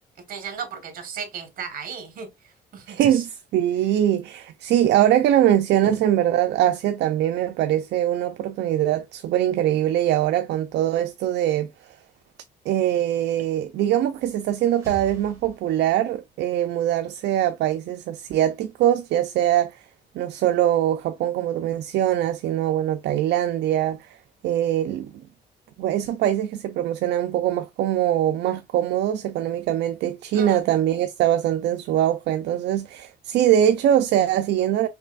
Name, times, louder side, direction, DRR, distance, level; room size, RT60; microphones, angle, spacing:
voice 1, 0.3-2.3 2.7-3.2 5.8-6.0 30.3-30.8, right 6 dB, 50° right, 1.3 m, -35 dB
voice 2, 2.9-11.7 12.7-19.8 20.1-24.1 24.4-25.1 25.8-34.9, right 11 dB, 70° right, 0.5 m, -22 dB
sound 1, 14.1-16.3, right 3 dB, 15° right, 1.9 m, -44 dB
5.7 x 3.3 x 2.3 m
cardioid pair, 175°, 19 cm